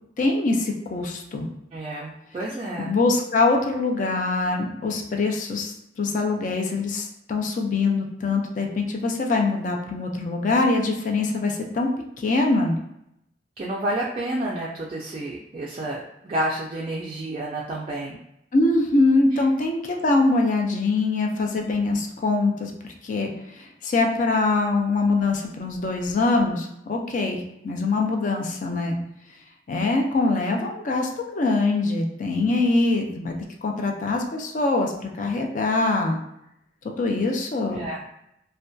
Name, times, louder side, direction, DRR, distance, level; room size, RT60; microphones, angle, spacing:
voice 1, 0.2-1.5 2.8-5.7 6.0-11.9 12.2-12.8 18.5-22.7 23.0-29.0 29.7-33.3 33.6-36.2 37.0-37.8, left 3 dB, 45° left, 2 dB, 0.4 m, -23 dB
voice 2, 1.7-2.9 13.6-18.2 19.3-19.4 37.7-38.0, right 1 dB, 35° right, -4 dB, 0.3 m, -30 dB
2.6 x 2.1 x 2.2 m, 0.79 s
head